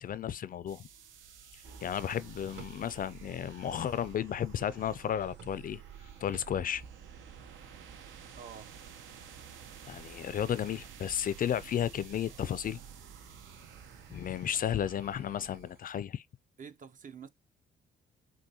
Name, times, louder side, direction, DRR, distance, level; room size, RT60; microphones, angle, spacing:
voice 1, 0.0-0.9 1.8-5.8 6.2-6.8 9.9-12.8 14.1-16.2, left 9 dB, 45° left, 0.4 m, -33 dB
sound 1, 0.7-16.0, right 7 dB, 75° right, 0.8 m, -53 dB
sound 2, 1.6-15.6, right 7 dB, 60° right, 2.0 m, -53 dB
voice 2, 8.4-8.7 16.6-17.3, right 7 dB, 40° right, 0.6 m, -47 dB
6.1 x 2.2 x 2.7 m
cardioid pair, 90°, 20 cm